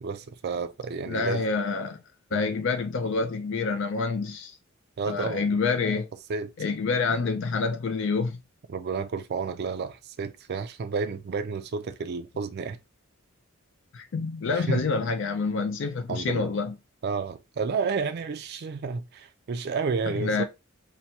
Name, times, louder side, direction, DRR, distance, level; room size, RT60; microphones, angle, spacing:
voice 1, 0.0-1.4 2.3-2.5 5.0-5.6 6.3-6.5 8.7-12.8 14.6-14.8 16.1-16.5 17.0-20.4, right 5 dB, 50° right, 0.4 m, -31 dB
voice 2, 1.1-2.0 2.3-4.6 5.1-6.1 6.6-8.4 13.9-16.7 20.1-20.4, left 4 dB, 60° left, 0.4 m, -27 dB
5.8 x 2.2 x 2.7 m
head